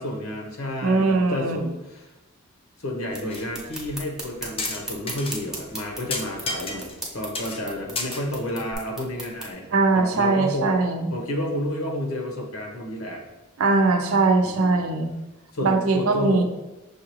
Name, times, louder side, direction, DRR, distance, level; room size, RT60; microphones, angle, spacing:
voice 1, 0.0-2.1 2.8-9.7 9.9-10.7 11.1-13.2 14.4-14.8 15.5-16.4, left 1 dB, 70° left, 1 dB, 1.0 m, -30 dB
voice 2, 0.8-1.6 9.7-11.1 13.6-15.1 15.6-16.4, right 3 dB, 75° right, 5 dB, 0.6 m, -21 dB
sound 1, 3.1-3.5 3.7-3.8 4.6-5.4 5.7-5.8 6.1-7.1 7.4-7.6 8.0-8.8, left 2 dB, 25° left, 0.5 m, -31 dB
sound 2, 3.1-9.5, right 1 dB, ahead, 0.8 m, -38 dB
6.4 x 2.4 x 3.0 m, 1.0 s
head